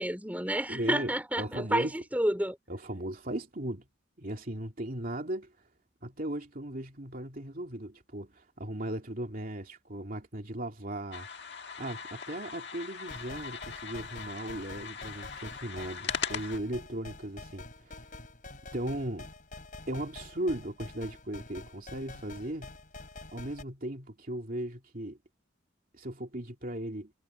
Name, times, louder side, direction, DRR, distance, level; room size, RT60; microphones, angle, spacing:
voice 1, 0.0-2.6, right 1 dB, 10° right, 4.3 m, -30 dB
voice 2, 0.7-1.9 2.7-3.9 4.2-5.5 6.0-11.3 11.8-18.1 18.7-19.3 19.9-22.7 23.3-25.2 25.9-27.1, right 1 dB, 45° right, 2.8 m, -37 dB
sound 1, 11.1-16.6, left 6 dB, 60° left, 1.7 m, -40 dB
sound 2, 13.1-23.6, left 2 dB, 45° left, 4.1 m, -47 dB
head